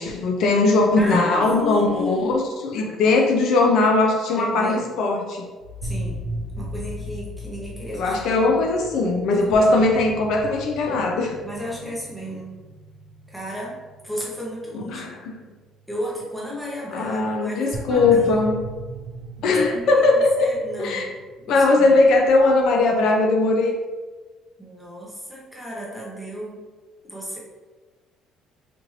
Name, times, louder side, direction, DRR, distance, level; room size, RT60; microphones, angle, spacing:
voice 1, 0.0-5.5 7.9-11.4 14.7-15.4 16.9-18.6 19.4-20.5 20.8-21.1 21.5-23.7, left 3 dB, 55° left, 1 dB, 0.5 m, -19 dB
voice 2, 1.0-2.4 4.3-4.8 5.8-6.2 6.6-8.6 9.2-9.7 11.4-12.6 13.3-13.8 14.0-15.2 15.9-18.5 19.4-20.0 20.4-21.1 21.4-21.9 24.6-26.6 27.0-27.4, equal, ahead, -5 dB, 0.8 m, -33 dB
sound 1, 5.6-15.8 17.7-22.8, right 1 dB, 55° right, 0.5 m, -37 dB
4.2 x 2.6 x 3.1 m, 1.3 s
cardioid pair, 180°, 0 cm